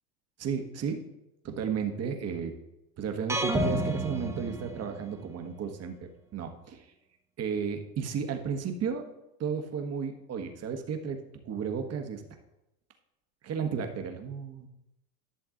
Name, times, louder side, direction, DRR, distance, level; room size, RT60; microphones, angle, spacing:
voice 1, 0.4-1.0 1.4-2.5 3.0-6.9 7.4-9.1 9.4-12.2 13.4-14.7, right 6 dB, 35° right, 5 dB, 1.3 m, -33 dB
sound 1, 3.3-5.3, right 1 dB, 5° right, 1.1 m, -30 dB
11.5 x 6.5 x 3.8 m, 0.90 s
supercardioid pair, 105°, 45 cm